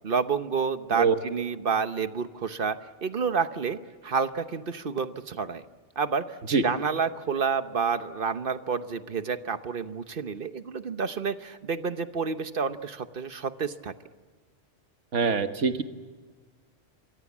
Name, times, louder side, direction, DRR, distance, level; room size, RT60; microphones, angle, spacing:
voice 1, 0.0-5.6 6.0-6.4 6.6-13.9, right 5 dB, 50° right, 11 dB, 1.1 m, -29 dB
voice 2, 15.1-15.8, right 5 dB, 80° right, 8 dB, 1.7 m, -23 dB
27.5 x 23.5 x 7.3 m, 1.5 s
omnidirectional pair, 1.2 m